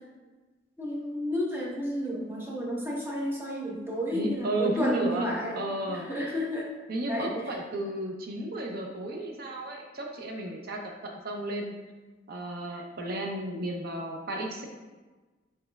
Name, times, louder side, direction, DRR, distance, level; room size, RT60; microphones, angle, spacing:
voice 1, 0.8-5.6 5.9-6.7 7.1-7.3 12.7-12.8, equal, 10° right, -4 dB, 0.8 m, -31 dB
voice 2, 4.1-5.3 5.5-6.1 6.9-11.7 12.3-14.7, right 1 dB, 50° right, 2 dB, 0.5 m, -33 dB
4.9 x 4.3 x 2.2 m, 1.2 s
head